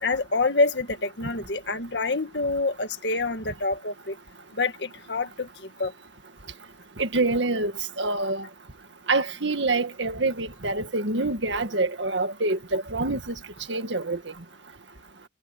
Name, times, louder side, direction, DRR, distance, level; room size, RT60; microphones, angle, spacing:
voice 1, 0.0-4.2 4.6-5.5 5.8-5.9, left 3 dB, 60° left, 2.0 m, -26 dB
voice 2, 7.0-7.7 8.0-8.5 9.1-13.4 13.7-14.2, right 2 dB, 70° right, 1.9 m, -26 dB
head